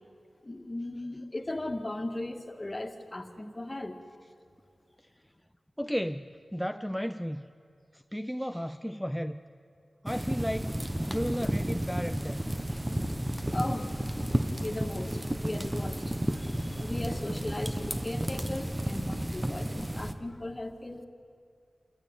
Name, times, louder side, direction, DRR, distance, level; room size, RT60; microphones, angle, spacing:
voice 1, 0.4-4.0 13.5-14.1 14.6-21.0, left 1 dB, 35° left, 5 dB, 2.0 m, -37 dB
voice 2, 5.8-7.5 7.9-9.4 10.0-10.7 11.0-12.4 12.7-12.8 13.3-13.5, equal, ahead, 8 dB, 0.6 m, -34 dB
sound 1, 10.1-20.1, right 1 dB, 20° right, 1.4 m, -32 dB
27.0 x 14.0 x 9.0 m, 2.3 s
cardioid pair, 40°, 0 cm